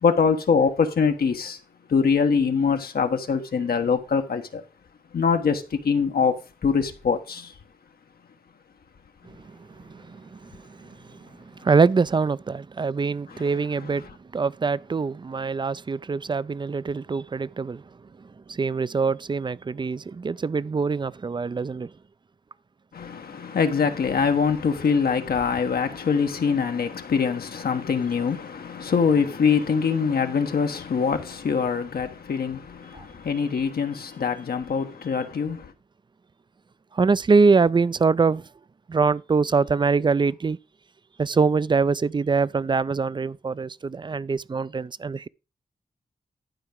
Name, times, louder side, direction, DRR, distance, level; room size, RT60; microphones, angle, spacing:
voice 1, 0.0-1.6 1.9-4.6 5.1-6.3 6.6-7.5 13.3-13.9 22.9-35.7, left 6 dB, 80° left, 1.2 m, -24 dB
voice 2, 9.9-11.2 11.6-14.1 14.3-17.8 18.5-21.9 32.9-33.1 36.9-38.4 38.9-40.6 41.2-45.3, right 4 dB, 30° right, 0.4 m, -23 dB
11.5 x 4.7 x 5.2 m
cardioid pair, 65°, 16 cm